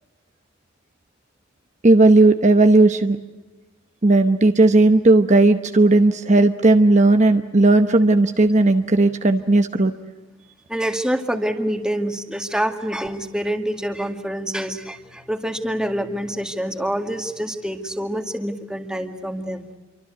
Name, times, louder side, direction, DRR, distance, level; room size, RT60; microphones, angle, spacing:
voice 1, 1.8-3.2 4.0-9.9, right 2 dB, 40° right, 7 dB, 1.0 m, -15 dB
voice 2, 10.7-19.7, equal, 5° right, 6 dB, 2.0 m, -26 dB
28.0 x 24.5 x 8.2 m, 1.2 s
head